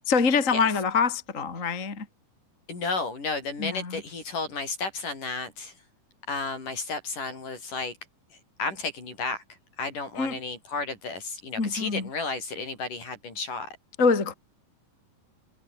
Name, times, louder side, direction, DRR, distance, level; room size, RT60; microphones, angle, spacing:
voice 1, 0.1-2.1 3.6-4.0 10.2-10.4 11.6-12.1 14.0-14.3, left 5 dB, 25° left, 2.8 m, -25 dB
voice 2, 2.7-5.8 6.3-7.9 8.3-9.4 9.8-13.7, left 4 dB, 65° left, 8.6 m, -33 dB
omnidirectional pair, 4.0 m